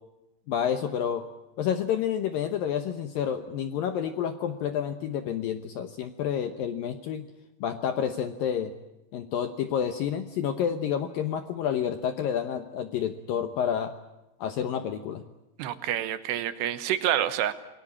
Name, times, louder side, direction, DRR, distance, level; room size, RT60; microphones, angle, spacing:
voice 1, 0.5-1.2 1.6-7.3 7.6-8.7 9.1-13.9 14.4-15.2, left 8 dB, 75° left, 9 dB, 2.2 m, -29 dB
voice 2, 15.6-17.5, right 11 dB, 75° right, 12 dB, 3.1 m, -28 dB
28.0 x 20.5 x 8.6 m, 0.98 s
omnidirectional pair, 5.3 m